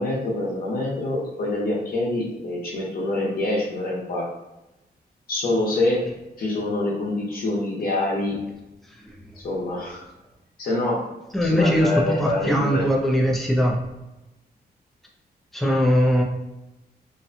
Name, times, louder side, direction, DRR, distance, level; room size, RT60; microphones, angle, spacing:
voice 1, 0.0-4.3 5.3-6.0 6.4-8.4 9.4-10.1 10.6-11.0 11.4-12.9, left 2 dB, 60° left, -3 dB, 0.8 m, -25 dB
voice 2, 11.3-13.8 15.5-16.2, equal, ahead, -2 dB, 0.4 m, -21 dB
2.6 x 2.1 x 2.6 m, 0.99 s
wide cardioid pair, 175°, 17 cm